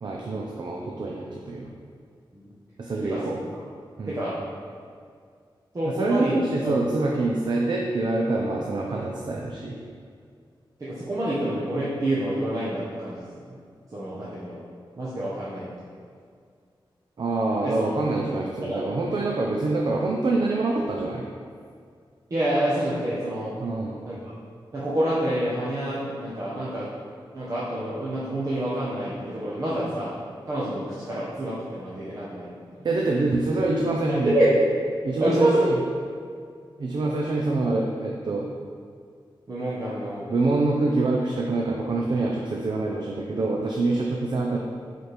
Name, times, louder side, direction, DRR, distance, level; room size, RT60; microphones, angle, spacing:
voice 1, 0.0-1.7 2.8-3.4 4.0-4.2 5.8-9.8 17.2-21.2 23.6-24.0 32.8-34.3 35.0-35.7 36.8-38.5 40.3-44.6, right 2 dB, 55° right, -1 dB, 0.6 m, -25 dB
voice 2, 4.1-4.4 5.7-6.4 6.6-6.8 10.8-13.5 13.9-14.6 15.0-15.7 17.6-17.9 18.6-18.8 22.3-23.5 24.0-24.2 24.7-26.9 27.3-30.1 30.5-32.8 34.1-34.6 35.2-35.8 39.5-40.2, right 1 dB, 40° right, -8 dB, 1.0 m, -27 dB
8.7 x 4.2 x 3.4 m, 2.1 s
wide cardioid pair, 140°, 9 cm